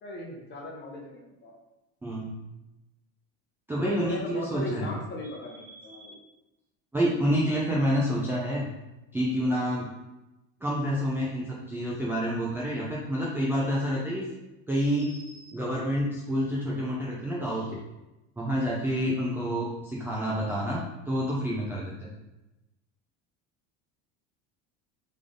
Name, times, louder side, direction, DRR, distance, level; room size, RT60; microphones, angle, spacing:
voice 1, 0.0-1.5 3.8-6.2, left 1 dB, 30° left, -1 dB, 1.1 m, -37 dB
voice 2, 2.0-2.3 3.7-4.9 5.6-6.1 6.9-8.7 9.1-9.9 10.6-14.2 14.7-17.8 18.4-22.1, equal, 5° right, -6 dB, 0.4 m, -28 dB
3.5 x 3.5 x 3.7 m, 0.99 s
cardioid pair, 140°, 34 cm